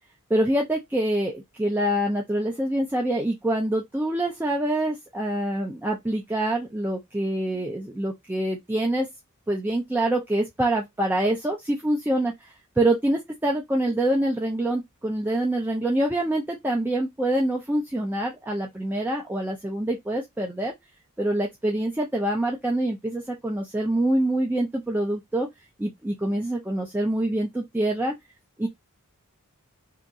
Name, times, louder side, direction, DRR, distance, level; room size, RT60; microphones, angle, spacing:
voice 1, 0.3-9.1 9.5-20.7 21.2-25.5 25.8-28.1 28.6-28.7, right 1 dB, 10° right, 0.5 m, -25 dB
2.8 x 2.6 x 3.5 m
head